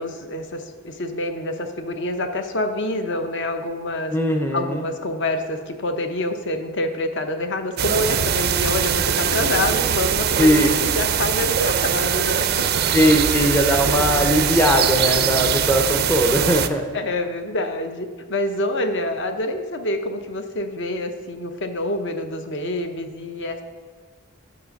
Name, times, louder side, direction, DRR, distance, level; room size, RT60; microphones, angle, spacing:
voice 1, 0.0-4.1 4.5-12.8 16.9-23.6, left 1 dB, 55° left, 7 dB, 0.8 m, -27 dB
voice 2, 4.1-4.8 10.4-10.7 12.9-16.8, equal, 10° left, 3 dB, 0.5 m, -19 dB
sound 1, 7.8-16.7, right 8 dB, 45° right, 0.4 m, -22 dB
8.6 x 6.4 x 5.2 m, 1.5 s
head